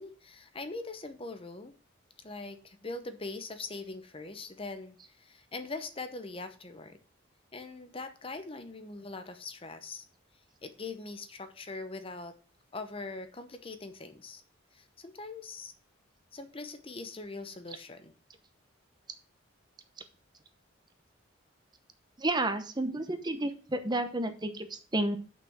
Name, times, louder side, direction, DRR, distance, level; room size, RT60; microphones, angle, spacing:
voice 1, 0.0-1.7 2.2-7.0 7.5-10.0 10.6-12.3 12.7-14.4 14.7-15.7 16.3-18.1, left 3 dB, 30° left, 9 dB, 0.8 m, -42 dB
voice 2, 22.2-25.2, right 1 dB, 20° right, 8 dB, 0.9 m, -31 dB
6.8 x 6.2 x 6.2 m, 0.39 s
head